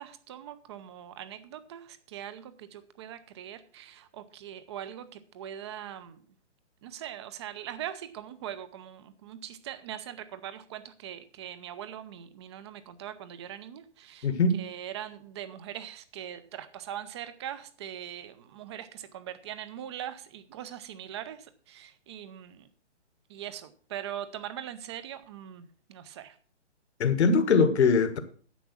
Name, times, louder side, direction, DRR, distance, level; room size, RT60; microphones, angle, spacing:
voice 1, 0.0-6.2 6.8-22.7 23.3-26.4, right 10 dB, 25° right, 13 dB, 0.7 m, -41 dB
voice 2, 14.2-14.6 27.0-28.2, left 4 dB, 65° left, 9 dB, 1.6 m, -22 dB
10.0 x 6.9 x 6.1 m, 0.43 s
hypercardioid pair, 155°, 35 cm